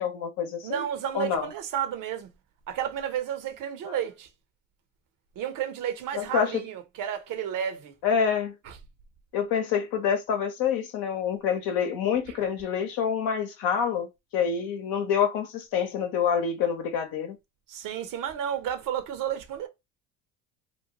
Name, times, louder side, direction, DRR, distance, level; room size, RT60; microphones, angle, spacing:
voice 1, 0.0-0.9 1.1-1.5 3.9-4.0 6.1-6.6 8.0-8.5 9.3-17.4, left 7 dB, 60° left, 0.9 m, -27 dB
voice 2, 0.6-2.3 2.7-4.3 5.4-7.9 8.6-8.8 17.7-19.7, right 9 dB, 55° right, 0.8 m, -32 dB
2.9 x 2.2 x 2.8 m
hypercardioid pair, 70°, 40 cm